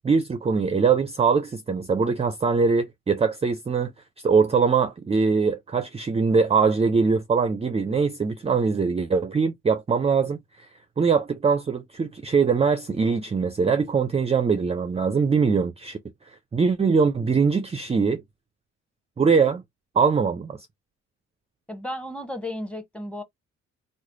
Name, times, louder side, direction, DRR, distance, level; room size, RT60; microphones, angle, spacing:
voice 1, 0.0-3.9 4.2-10.4 11.0-16.0 16.5-18.2 19.2-19.6 20.0-20.6, right 5 dB, 20° right, 0.4 m, -22 dB
voice 2, 21.7-23.2, left 1 dB, 5° left, 0.9 m, -33 dB
3.2 x 2.1 x 3.7 m
cardioid pair, 90°, 30 cm